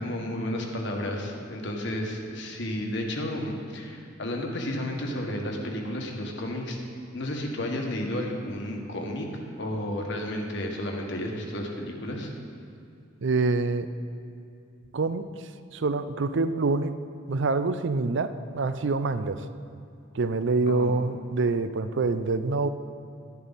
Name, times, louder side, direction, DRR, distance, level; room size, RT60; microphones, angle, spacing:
voice 1, 0.0-6.8 7.1-12.3 20.7-20.9, left 1 dB, 65° left, 1 dB, 1.5 m, -32 dB
voice 2, 13.2-13.9 14.9-15.3 15.7-17.0 17.3-19.5 20.1-22.7, right 3 dB, 65° right, 12 dB, 0.5 m, -26 dB
11.5 x 11.0 x 4.1 m, 2.5 s
head